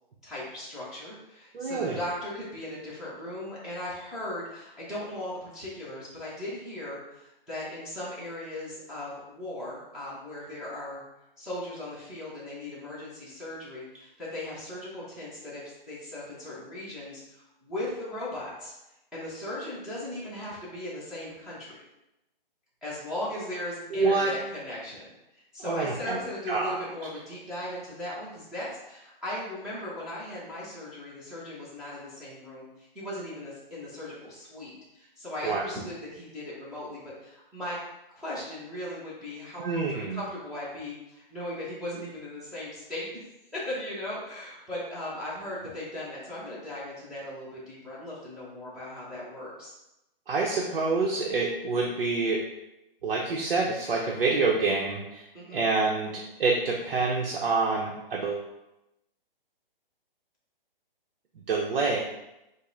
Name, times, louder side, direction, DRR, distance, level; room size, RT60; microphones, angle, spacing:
voice 1, 0.2-11.0 11.4-18.7 19.1-21.8 22.8-25.1 25.3-37.8 38.1-43.2 43.5-49.7 55.3-55.7, left 1 dB, ahead, -11 dB, 0.7 m, -38 dB
voice 2, 1.5-2.0 23.9-24.3 25.6-26.2 26.5-26.8 35.4-35.7 39.6-40.2 50.3-52.4 53.0-55.3 55.5-58.5 61.5-62.0, right 3 dB, 75° right, -2 dB, 0.8 m, -27 dB
5.3 x 2.1 x 3.9 m, 0.92 s
hypercardioid pair, 155°, 29 cm